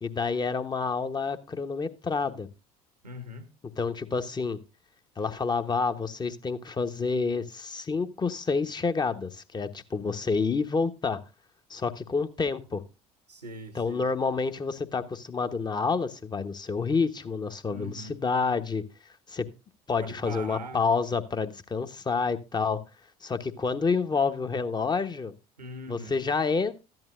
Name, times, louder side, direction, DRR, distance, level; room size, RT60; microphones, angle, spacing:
voice 1, 0.0-2.5 3.8-4.6 5.2-11.2 11.7-12.8 13.7-18.8 19.3-19.5 19.9-22.8 23.2-25.3 25.9-26.7, left 4 dB, 20° left, 9 dB, 1.1 m, -28 dB
voice 2, 3.0-3.5 13.3-14.1 17.7-18.2 20.0-20.8 25.6-26.2, equal, 85° right, 9 dB, 1.3 m, -41 dB
14.0 x 11.0 x 2.5 m, 0.29 s
figure-of-eight pair, 60°, 20 cm